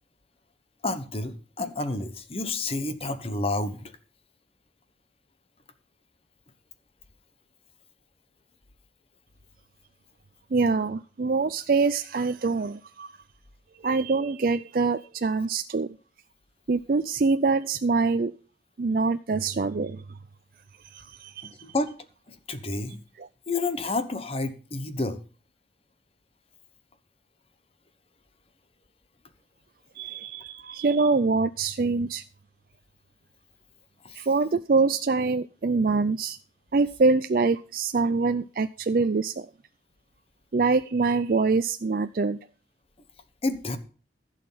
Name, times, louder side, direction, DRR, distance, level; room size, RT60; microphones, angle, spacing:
voice 1, 0.8-3.9 21.6-21.9 22.3-23.0 23.5-25.2 34.0-34.2 43.4-43.8, left 2 dB, 35° left, 10 dB, 1.0 m, -30 dB
voice 2, 10.5-13.1 13.8-16.0 16.7-18.3 18.8-20.0 20.9-21.5 23.2-23.3 30.0-32.2 34.1-36.4 36.7-39.5 40.5-42.4, right 4 dB, 50° right, 9 dB, 0.4 m, -24 dB
15.5 x 6.5 x 5.5 m, 0.38 s
head